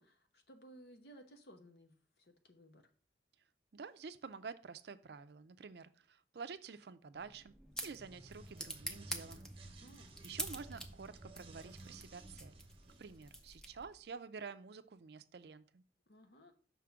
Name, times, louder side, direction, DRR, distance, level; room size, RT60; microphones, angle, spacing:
voice 1, 0.0-2.8 9.8-10.2 16.1-16.5, right 1 dB, 65° left, 6 dB, 1.0 m, -59 dB
voice 2, 3.7-7.5 7.8-9.4 10.2-12.5 13.0-15.8, right 5 dB, 65° right, 12 dB, 0.4 m, -49 dB
sound 1, 7.1-14.0, right 1 dB, 5° left, 0.5 m, -48 dB
sound 2, 7.8-13.5, right 2 dB, 30° right, 0.8 m, -54 dB
5.8 x 3.7 x 5.8 m, 0.42 s
head